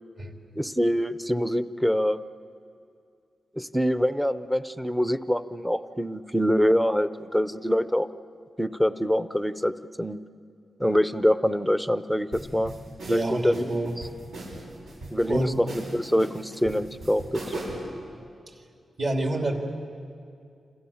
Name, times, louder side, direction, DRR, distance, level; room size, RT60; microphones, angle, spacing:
voice 1, 0.5-2.2 3.6-8.1 8.6-10.2 10.8-12.7 13.1-13.6 15.1-17.4, equal, ahead, 13 dB, 0.6 m, -25 dB
sound 1, 12.3-17.9, right 2 dB, 75° right, 7.8 m, -38 dB
voice 2, 13.1-13.9 15.3-15.6 18.5-18.6 19.0-19.5, right 2 dB, 45° right, 3 dB, 3.0 m, -27 dB
28.5 x 27.5 x 7.2 m, 2.4 s
wide cardioid pair, 175°, 0 cm